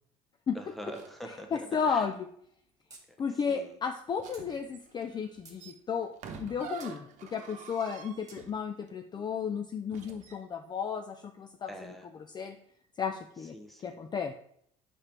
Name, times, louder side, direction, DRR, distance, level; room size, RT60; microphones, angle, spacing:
voice 1, 0.5-2.1 3.1-3.8 11.7-12.1 13.4-14.0, equal, ahead, 4 dB, 1.1 m, -45 dB
sound 1, 0.9-1.4 4.2-8.9 9.9-10.4, right 6 dB, 55° right, 1.0 m, -47 dB
voice 2, 1.5-2.3 3.2-6.1 6.4-11.7 12.3-12.6 13.0-13.5 13.8-14.3, left 6 dB, 30° left, 6 dB, 0.4 m, -33 dB
sound 2, 2.9-3.0 3.3-3.4 4.3-4.5 5.1-5.6 6.8-6.9 8.3-8.4, right 3 dB, 25° right, 1.7 m, -52 dB
4.9 x 4.4 x 4.3 m, 0.66 s
supercardioid pair, 80°, 15 cm